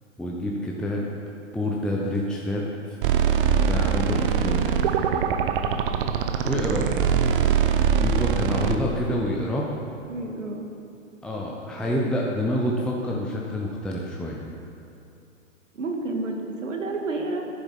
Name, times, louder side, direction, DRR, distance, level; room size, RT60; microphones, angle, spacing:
voice 1, 0.2-1.0 1.5-3.0 3.4-4.9 6.4-6.9 8.0-9.7 11.2-14.4, equal, ahead, -3 dB, 0.8 m, -28 dB
sound 1, 3.0-8.8, right 7 dB, 45° right, 0.8 m, -22 dB
voice 2, 6.8-7.1 10.1-10.7 15.7-17.5, right 2 dB, 75° right, 1 dB, 2.0 m, -30 dB
11.0 x 10.0 x 5.5 m, 2.7 s
figure-of-eight pair, 110°, 38 cm